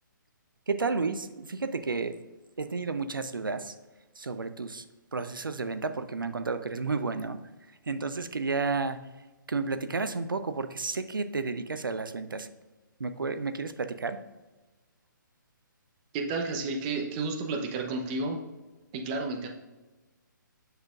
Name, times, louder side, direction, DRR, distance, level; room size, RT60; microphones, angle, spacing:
voice 1, 0.7-2.2 2.6-3.8 4.2-4.8 5.1-7.4 7.9-9.0 9.5-12.5 13.0-14.2, right 4 dB, 85° right, 11 dB, 0.6 m, -31 dB
voice 2, 16.1-18.4 18.9-19.5, right 3 dB, 25° right, 2 dB, 0.8 m, -31 dB
8.1 x 5.6 x 2.4 m, 1.2 s
figure-of-eight pair, 140°, 11 cm